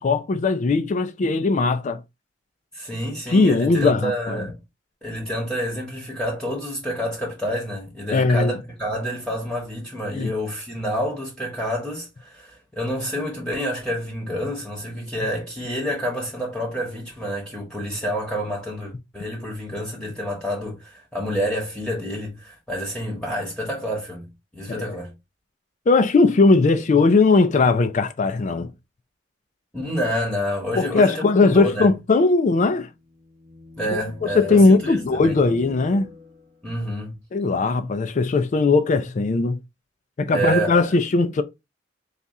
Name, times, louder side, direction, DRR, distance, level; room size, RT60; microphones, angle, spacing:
voice 1, 0.0-2.0 3.3-4.4 8.1-8.5 10.1-10.3 24.7-25.0 25.9-28.7 30.7-32.9 33.9-34.0 34.3-36.1 37.3-39.6 40.2-41.4, left 3 dB, 40° left, 0.4 m, -19 dB
voice 2, 2.7-4.6 5.0-24.3 24.5-25.1 29.7-31.9 33.8-35.4 36.6-37.1 40.3-40.8, equal, 5° left, 1.0 m, -28 dB
sound 1, 32.9-36.7, left 3 dB, 30° right, 0.7 m, -43 dB
4.1 x 2.4 x 3.6 m
head